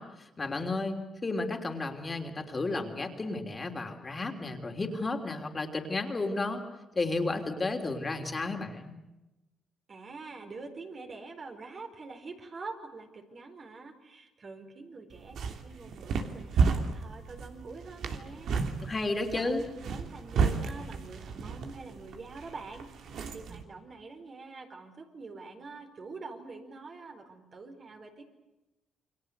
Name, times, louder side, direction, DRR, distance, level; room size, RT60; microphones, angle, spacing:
voice 1, 0.0-6.6 6.9-8.9 18.8-19.7, left 2 dB, 30° left, 4 dB, 3.3 m, -33 dB
voice 2, 9.9-18.6 19.3-19.5 19.8-22.9 23.3-28.2, right 3 dB, 45° right, 4 dB, 4.7 m, -45 dB
sound 1, 15.1-23.6, right 5 dB, 70° right, 2.8 m, -32 dB
29.0 x 23.0 x 8.1 m, 1.0 s
cardioid pair, 90°, 0 cm